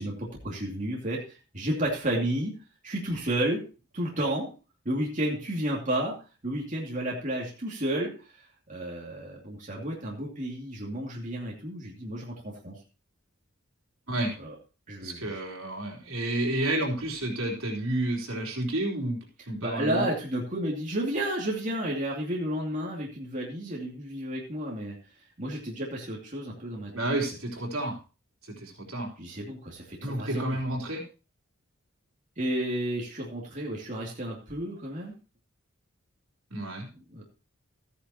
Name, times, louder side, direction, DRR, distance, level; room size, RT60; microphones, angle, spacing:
voice 1, 0.0-2.6 2.8-3.6 3.9-4.5 4.8-6.2 6.4-12.8 14.4-14.5 14.9-15.4 19.6-26.9 29.2-30.6 32.4-35.1 36.9-37.2, right 1 dB, 35° right, -3 dB, 2.6 m, -32 dB
voice 2, 15.0-19.2 19.5-20.0 26.9-28.0 28.4-29.1 30.0-31.0 36.5-36.9, right 1 dB, 75° right, -2 dB, 3.9 m, -30 dB
14.5 x 10.0 x 2.9 m, 0.34 s
head